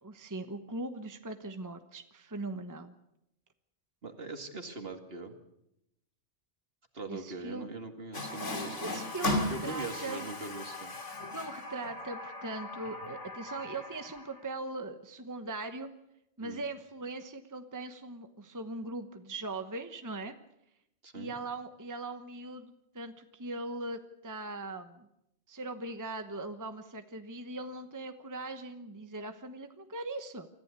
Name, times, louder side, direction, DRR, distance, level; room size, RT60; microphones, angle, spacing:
voice 1, 0.0-2.9 7.1-7.7 8.8-10.2 11.3-15.9 16.4-20.4 21.1-25.1 25.5-30.5, right 2 dB, 15° right, 8 dB, 1.0 m, -40 dB
voice 2, 4.0-5.3 6.9-9.0 9.5-10.9 16.4-16.6 21.0-21.4, right 2 dB, 55° right, 6 dB, 2.3 m, -41 dB
Water tap faucet, 8.1-14.5, left 2 dB, 85° left, 2.8 m, -37 dB
25.0 x 14.5 x 8.2 m, 0.83 s
omnidirectional pair, 1.2 m